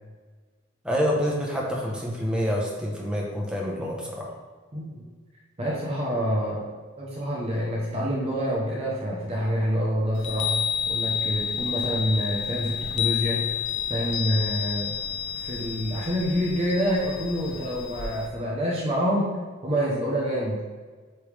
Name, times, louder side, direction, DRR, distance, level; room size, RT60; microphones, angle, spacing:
voice 1, 0.8-4.3, equal, 5° right, -3 dB, 1.0 m, -27 dB
voice 2, 4.7-5.0 5.6-6.7 7.0-13.4 13.9-15.0 15.4-19.3 19.6-20.6, equal, 30° right, -4 dB, 0.8 m, -27 dB
Chime, 10.2-18.3, left 8 dB, 55° left, 0.6 m, -30 dB
8.1 x 3.4 x 3.4 m, 1.4 s
head